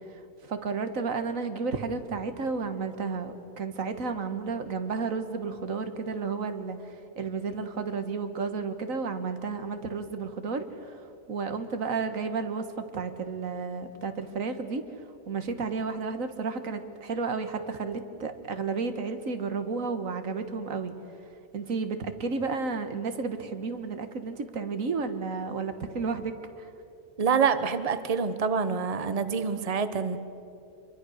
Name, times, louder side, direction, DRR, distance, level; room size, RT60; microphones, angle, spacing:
voice 1, 0.4-11.0 11.3-14.9 15.3-20.9 21.5-26.7, right 4 dB, 90° right, 8 dB, 1.8 m, -32 dB
voice 2, 27.2-30.2, right 6 dB, 30° right, 11 dB, 1.0 m, -26 dB
26.5 x 22.5 x 6.5 m, 2.8 s
omnidirectional pair, 1.4 m